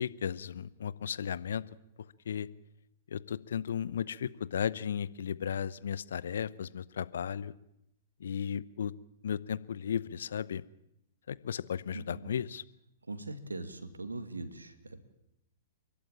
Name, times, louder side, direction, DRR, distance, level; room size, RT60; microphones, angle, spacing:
voice 1, 0.0-1.6 2.3-2.5 3.1-7.5 8.2-8.9 9.2-10.6 11.3-12.6, left 8 dB, 65° left, 18 dB, 0.8 m, -35 dB
voice 2, 11.9-12.3 13.1-15.0, right 2 dB, 85° right, 10 dB, 2.3 m, -41 dB
30.0 x 12.0 x 8.9 m, 0.83 s
figure-of-eight pair, 110°, 0 cm